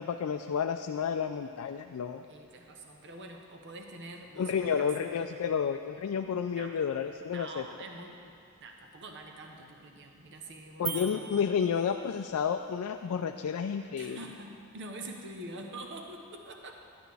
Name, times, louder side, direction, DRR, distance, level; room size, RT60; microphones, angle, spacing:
voice 1, 0.0-2.2 4.4-7.6 10.8-14.2, left 7 dB, 75° left, 6 dB, 0.3 m, -31 dB
voice 2, 2.3-4.9 6.5-6.8 7.3-8.3 8.6-11.5 14.0-16.8, right 2 dB, 55° right, 3 dB, 0.9 m, -45 dB
sound 1, 10.9-12.4, right 8 dB, 40° right, 0.6 m, -40 dB
11.5 x 11.0 x 3.4 m, 2.5 s
head